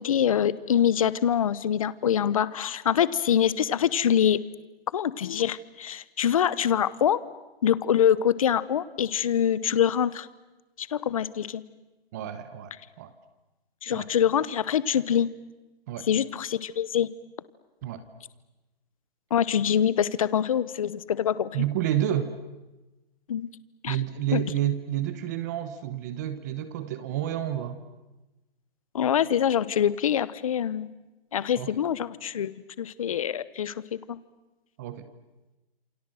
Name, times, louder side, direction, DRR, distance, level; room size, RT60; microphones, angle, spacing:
voice 1, 0.0-4.4 4.9-7.2 7.6-10.3 10.8-11.6 13.8-15.3 16.1-17.1 19.3-21.6 23.3-23.5 23.8-24.0 24.3-24.4 28.9-30.9 31.3-34.2, left 9 dB, 35° left, 18 dB, 1.0 m, -25 dB
voice 2, 12.1-13.1 13.9-14.1 15.9-16.1 17.8-18.0 21.5-22.3 23.9-27.8 31.6-31.7 34.8-35.1, right 11 dB, 20° right, 11 dB, 1.0 m, -30 dB
28.0 x 27.0 x 7.8 m, 1.0 s
hypercardioid pair, 170°, 30 cm